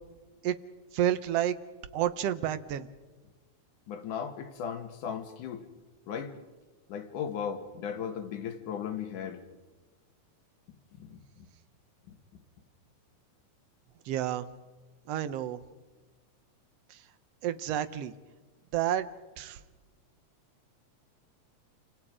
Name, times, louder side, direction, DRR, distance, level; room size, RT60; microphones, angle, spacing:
voice 1, 0.9-1.6 1.9-2.9 14.1-14.5 15.1-15.6 16.9-17.0 17.4-18.1 18.7-19.1 19.4-19.6, right 11 dB, 70° right, 1.7 m, -29 dB
voice 2, 3.9-5.6 6.1-6.3 6.9-9.4 11.0-11.1, left 7 dB, 85° left, 3.0 m, -36 dB
29.0 x 26.0 x 4.9 m
omnidirectional pair, 3.5 m